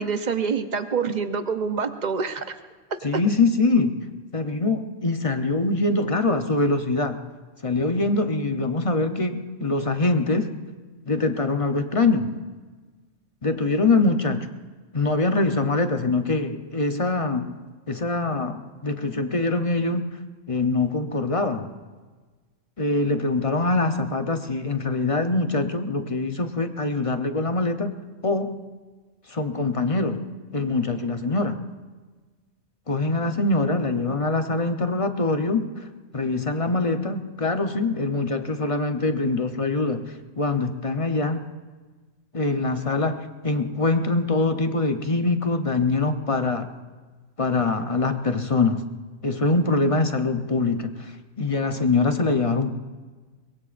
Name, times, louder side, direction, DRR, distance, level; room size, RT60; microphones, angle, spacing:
voice 1, 0.0-2.4 3.1-3.2, right 5 dB, 40° right, 8 dB, 0.9 m, -26 dB
voice 2, 3.0-4.0 4.3-7.2 7.6-10.5 11.1-12.3 13.4-14.5 14.9-17.5 17.9-20.1 20.5-21.7 22.8-27.9 28.2-28.6 29.3-30.2 30.5-31.6 32.9-35.7 36.1-41.5 42.3-46.7 47.4-48.9 49.2-51.1 51.4-52.8, left 3 dB, 30° left, 7 dB, 0.8 m, -23 dB
23.0 x 21.5 x 2.5 m, 1.4 s
omnidirectional pair, 1.3 m